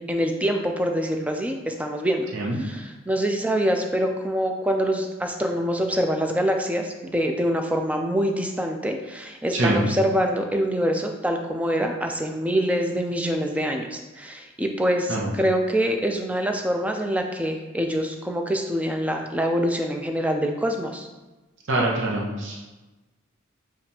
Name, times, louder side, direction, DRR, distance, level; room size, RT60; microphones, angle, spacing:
voice 1, 0.0-2.3 2.6-21.1, equal, 5° right, 3 dB, 0.3 m, -25 dB
voice 2, 9.5-9.9 15.1-15.3 21.7-22.7, right 1 dB, 60° right, -3 dB, 0.7 m, -24 dB
7.0 x 2.4 x 2.8 m, 1.1 s
head